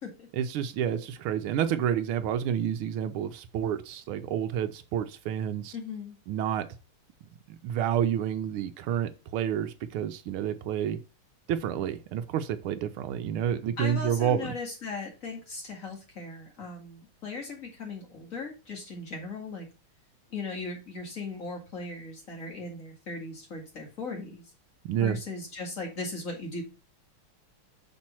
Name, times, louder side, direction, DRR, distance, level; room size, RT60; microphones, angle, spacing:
voice 1, 0.3-5.7 6.3-6.7 7.6-11.0 11.5-14.5 24.8-25.2, right 9 dB, 90° right, 1.6 m, -29 dB
voice 2, 5.7-6.2 13.8-19.7 20.3-24.4 25.0-26.6, left 3 dB, 40° left, 2.6 m, -38 dB
6.2 x 4.3 x 6.0 m
omnidirectional pair, 2.3 m